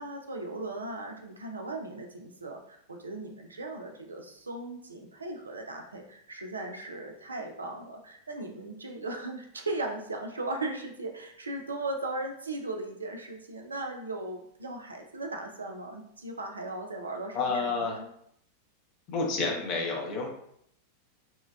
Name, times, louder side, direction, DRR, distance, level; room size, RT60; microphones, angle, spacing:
voice 1, 0.0-18.1, right 2 dB, 75° right, 3 dB, 0.4 m, -37 dB
voice 2, 17.3-18.0 19.1-20.3, left 4 dB, 40° left, 0 dB, 0.7 m, -29 dB
3.0 x 2.2 x 2.2 m, 0.70 s
figure-of-eight pair, 90°, 0 cm